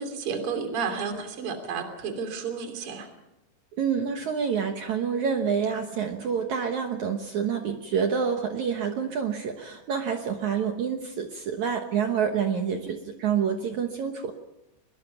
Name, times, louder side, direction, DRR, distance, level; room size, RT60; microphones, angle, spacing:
voice 1, 0.0-3.1, right 5 dB, 35° right, 5 dB, 3.4 m, -31 dB
voice 2, 3.8-14.3, right 7 dB, 75° right, 5 dB, 1.7 m, -27 dB
23.5 x 21.5 x 5.8 m, 0.89 s
omnidirectional pair, 5.2 m